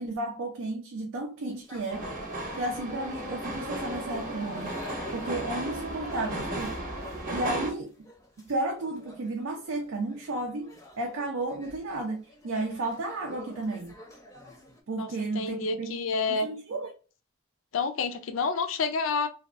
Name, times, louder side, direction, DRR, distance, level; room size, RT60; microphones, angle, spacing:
voice 1, 0.0-2.1 2.6-4.8 5.1-6.8 7.3-8.1 8.4-13.9 14.9-15.9 16.3-16.9, right 2 dB, 85° right, 0.5 m, -33 dB
sound 1, 1.5-14.8, left 1 dB, 15° left, 0.5 m, -50 dB
sound 2, 1.9-7.7, right 1 dB, 40° right, 0.7 m, -35 dB
voice 2, 15.3-16.5 17.7-19.3, left 4 dB, 75° left, 0.4 m, -28 dB
2.7 x 2.2 x 2.4 m
head